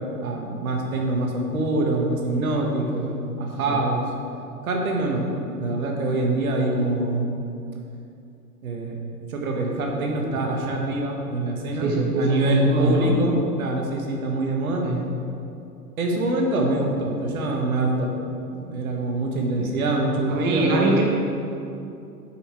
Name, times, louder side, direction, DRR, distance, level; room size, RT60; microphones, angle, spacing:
voice 1, 0.2-3.1 3.4-4.0 4.6-5.3 5.6-7.3 8.6-9.0 9.3-14.8 16.0-18.1 18.6-20.9, right 2 dB, 65° right, 1 dB, 1.4 m, -24 dB
voice 2, 2.8-3.1 3.7-3.8 11.8-13.2 14.8-15.0 19.6-19.7 20.3-21.0, right 1 dB, 25° right, 0 dB, 0.8 m, -23 dB
8.2 x 5.8 x 4.4 m, 2.7 s
figure-of-eight pair, 100°, 47 cm